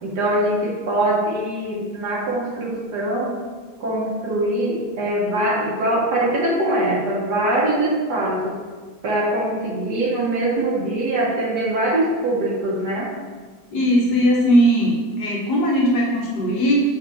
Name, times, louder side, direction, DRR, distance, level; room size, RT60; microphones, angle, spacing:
voice 1, 0.0-3.4 3.8-8.6 9.0-13.1, right 1 dB, 75° right, -4 dB, 1.7 m, -22 dB
voice 2, 13.7-16.8, equal, 75° left, -4 dB, 1.9 m, -18 dB
5.4 x 4.1 x 4.2 m, 1.5 s
omnidirectional pair, 1.8 m